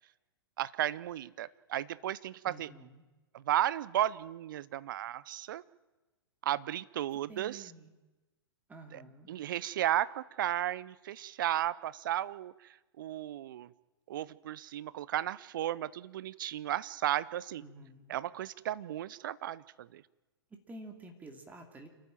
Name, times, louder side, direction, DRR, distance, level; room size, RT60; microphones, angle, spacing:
voice 1, 0.6-2.7 3.3-5.6 6.4-7.7 8.9-9.0 9.3-13.7 14.1-17.6 18.1-20.0, right 12 dB, 50° right, 19 dB, 0.7 m, -34 dB
voice 2, 2.4-3.0 7.3-7.9 8.7-9.3 17.6-18.2 20.5-21.9, right 2 dB, 10° right, 4 dB, 2.7 m, -50 dB
28.0 x 12.5 x 9.1 m, 1.1 s
figure-of-eight pair, 110°, 13 cm